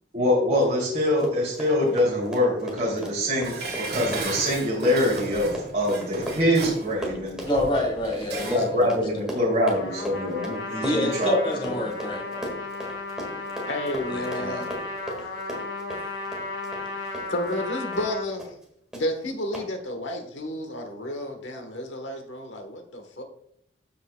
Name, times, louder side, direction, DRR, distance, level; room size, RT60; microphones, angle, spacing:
voice 1, 0.1-7.4 8.4-11.4, left 1 dB, 35° right, -5 dB, 2.6 m, -24 dB
Run, 1.0-17.7 17.9-18.1 18.4-18.6 18.9-19.0 19.5-19.7, equal, 5° right, 1.6 m, -37 dB
Dishes pots and pans, 3.4-8.7 9.1-9.2, right 2 dB, 55° right, 2.0 m, -35 dB
voice 2, 7.5-8.9 9.1-9.2 10.8-12.5 14.1-14.7, left 1 dB, 25° left, 0 dB, 1.6 m, -27 dB
Trumpet, 9.7-18.2, left 3 dB, 90° left, 1.7 m, -34 dB
voice 3, 13.7-14.7 15.2-15.3 17.0-18.6 18.9-23.2, left 1 dB, 75° left, 4 dB, 1.2 m, -31 dB
13.0 x 5.4 x 2.2 m, 0.72 s
head